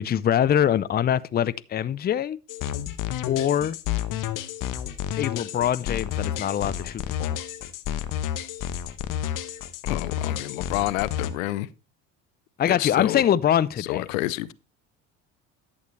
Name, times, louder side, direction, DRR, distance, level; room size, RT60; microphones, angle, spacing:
voice 1, 0.0-2.4 3.3-3.8 5.2-7.4 12.6-14.1, left 10 dB, 25° left, 0.5 m, -23 dB
sound 1, 2.5-11.3, left 10 dB, 55° left, 1.1 m, -30 dB
voice 2, 9.8-11.7 12.7-13.2 13.8-14.5, left 17 dB, 85° left, 0.6 m, -29 dB
11.0 x 8.3 x 3.2 m
hypercardioid pair, 80°, 39 cm